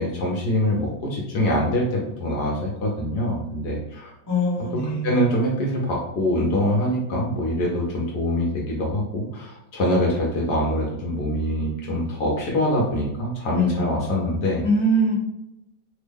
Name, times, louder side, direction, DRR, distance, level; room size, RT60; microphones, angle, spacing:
voice 1, 0.0-4.1 4.7-14.6, equal, 65° left, -3 dB, 1.1 m, -24 dB
voice 2, 4.3-5.2 13.5-14.1 14.6-15.1, equal, 20° left, -7 dB, 0.5 m, -23 dB
3.5 x 2.1 x 3.3 m, 0.88 s
omnidirectional pair, 2.2 m